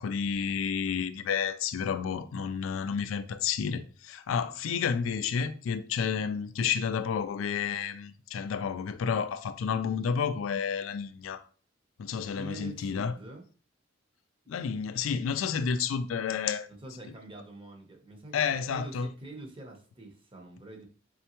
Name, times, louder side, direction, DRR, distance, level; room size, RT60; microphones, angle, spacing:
voice 1, 0.0-11.4 12.0-13.1 14.5-16.7 18.3-19.1, left 6 dB, 85° left, 0.4 m, -30 dB
voice 2, 12.2-13.4 16.7-20.9, right 2 dB, 25° right, 0.8 m, -45 dB
3.8 x 3.3 x 2.9 m
head